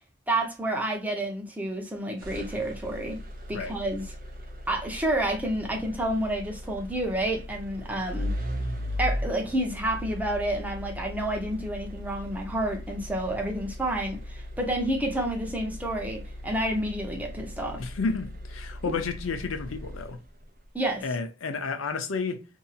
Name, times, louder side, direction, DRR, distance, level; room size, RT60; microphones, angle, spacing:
voice 1, 0.3-3.2 3.5-4.0 4.7-8.3 9.0-17.8 18.8-18.9 20.7-21.0, right 1 dB, 10° right, 0.6 m, -29 dB
sound 1, 2.2-20.5, left 1 dB, 45° right, 0.6 m, -37 dB
voice 2, 17.8-20.2 21.0-22.4, left 4 dB, 90° left, 0.5 m, -31 dB
2.7 x 2.6 x 2.3 m
head